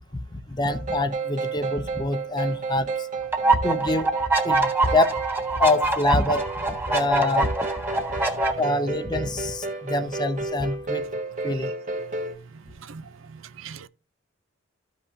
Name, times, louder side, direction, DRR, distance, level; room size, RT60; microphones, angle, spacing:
voice 1, 0.3-2.9 3.6-4.1 4.4-5.2 5.6-6.4 6.9-7.5 8.6-11.1 11.4-11.7, left 2 dB, 20° left, 0.6 m, -25 dB
sound 1, 0.7-12.3, right 4 dB, 35° right, 1.4 m, -32 dB
sound 2, 3.3-8.5, right 2 dB, 10° right, 1.4 m, -24 dB
voice 2, 7.9-8.6 11.5-11.7 12.1-13.9, right 6 dB, 65° right, 0.6 m, -43 dB
14.0 x 5.6 x 2.8 m
head